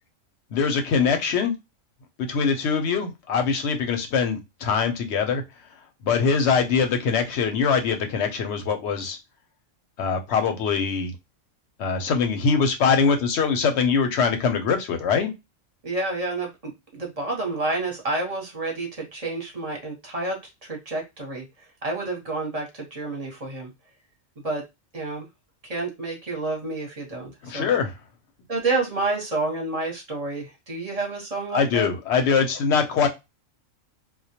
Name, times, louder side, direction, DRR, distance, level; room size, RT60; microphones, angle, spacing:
voice 1, 0.5-1.5 2.2-5.4 6.0-9.2 10.0-11.1 11.8-15.3 27.4-27.9 31.5-33.1, left 5 dB, 65° left, 5 dB, 0.8 m, -23 dB
voice 2, 15.8-20.4 20.6-23.7 24.4-24.6 24.9-25.3 25.6-27.7 28.5-31.9, right 2 dB, 35° right, 0 dB, 0.7 m, -29 dB
2.2 x 2.1 x 2.7 m, 0.22 s
omnidirectional pair, 1.3 m